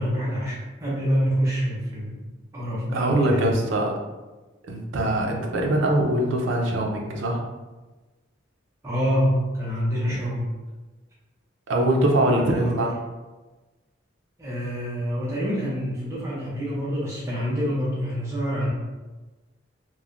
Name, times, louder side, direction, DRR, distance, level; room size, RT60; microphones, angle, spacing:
voice 1, 0.0-2.2 2.5-3.7 8.8-10.5 12.2-12.8 14.4-18.7, equal, 15° right, -7 dB, 0.4 m, -26 dB
voice 2, 2.9-3.9 4.6-7.4 11.7-12.9, right 1 dB, 70° right, 0 dB, 0.4 m, -22 dB
3.0 x 2.1 x 2.4 m, 1.2 s
head